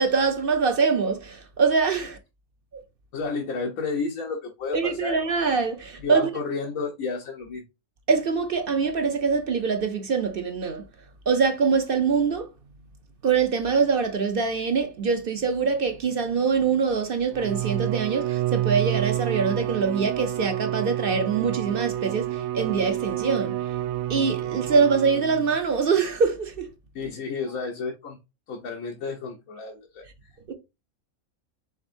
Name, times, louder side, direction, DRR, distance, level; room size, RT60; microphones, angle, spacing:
voice 1, 0.0-2.2 4.7-6.2 8.1-10.9 11.3-12.5 13.2-23.6 24.1-26.7 30.5-30.6, right 5 dB, 50° right, 0.8 m, -24 dB
voice 2, 3.1-5.2 6.0-7.6 26.9-28.2 28.5-30.0, left 4 dB, 90° left, 1.3 m, -31 dB
Bowed string instrument, 17.3-25.6, right 14 dB, 80° right, 1.0 m, -29 dB
5.3 x 3.5 x 2.6 m
omnidirectional pair, 1.4 m